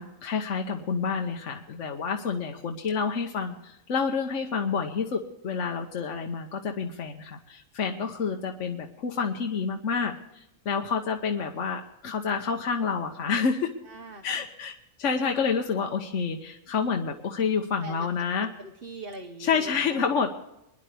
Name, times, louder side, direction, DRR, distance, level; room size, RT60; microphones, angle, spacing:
voice 1, 0.0-10.1 10.6-13.7 14.2-18.5 19.4-20.3, left 5 dB, 65° left, 3 dB, 1.3 m, -28 dB
voice 2, 13.8-14.5 17.8-18.1 18.6-20.0, right 2 dB, 45° right, 4 dB, 1.2 m, -42 dB
23.0 x 10.5 x 3.4 m, 0.89 s
omnidirectional pair, 1.4 m